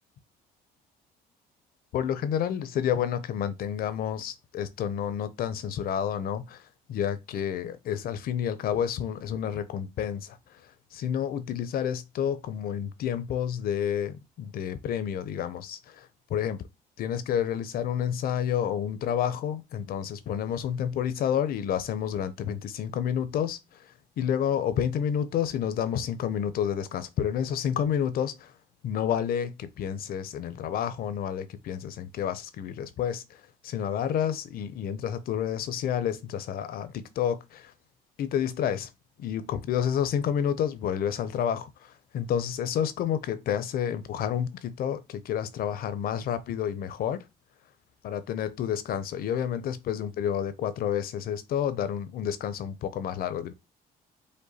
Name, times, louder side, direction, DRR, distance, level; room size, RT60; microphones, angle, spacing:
voice 1, 1.9-6.6 6.9-10.4 10.9-16.6 17.0-23.6 24.2-28.5 28.8-37.7 38.2-38.9 39.2-47.2 48.0-53.5, left 9 dB, 60° left, 0.6 m, -29 dB
5.2 x 2.2 x 4.0 m
cardioid pair, 110°, 17 cm